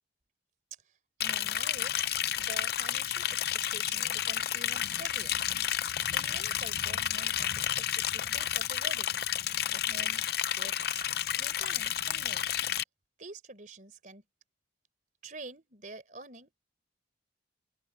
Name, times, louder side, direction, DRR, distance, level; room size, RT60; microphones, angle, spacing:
Liquid, 1.2-12.8, left 11 dB, 55° left, 0.6 m, -31 dB
voice 1, 1.2-2.1 2.4-5.4 6.1-9.2 9.7-10.3 10.5-11.1 11.4-12.5 13.2-14.2 15.2-16.5, right 2 dB, 45° right, 4.4 m, -47 dB
open air
head